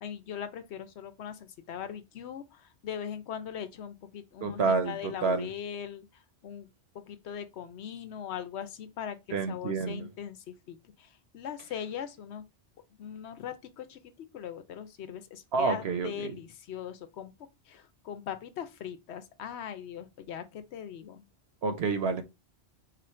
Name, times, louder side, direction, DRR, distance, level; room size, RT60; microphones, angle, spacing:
voice 1, 0.0-6.7 6.9-12.4 13.0-17.3 17.7-21.3, left 8 dB, 75° left, 0.9 m, -40 dB
voice 2, 4.4-5.5 9.3-10.1 15.5-16.4 21.6-22.2, right 4 dB, 70° right, 0.9 m, -29 dB
4.1 x 2.5 x 4.3 m
omnidirectional pair, 1.2 m